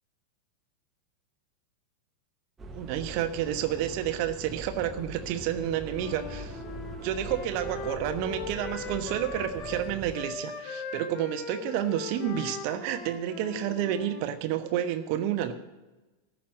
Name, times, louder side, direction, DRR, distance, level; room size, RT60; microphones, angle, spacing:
sound 1, 2.6-10.2, right 2 dB, 20° right, 1.2 m, -42 dB
voice 1, 2.7-6.6 7.0-15.5, right 10 dB, 45° right, 8 dB, 1.2 m, -30 dB
Wind instrument woodwind instrument, 5.9-14.3, left 4 dB, 30° left, 2.0 m, -40 dB
14.5 x 5.9 x 9.7 m, 1.1 s
figure-of-eight pair, 90°, 0 cm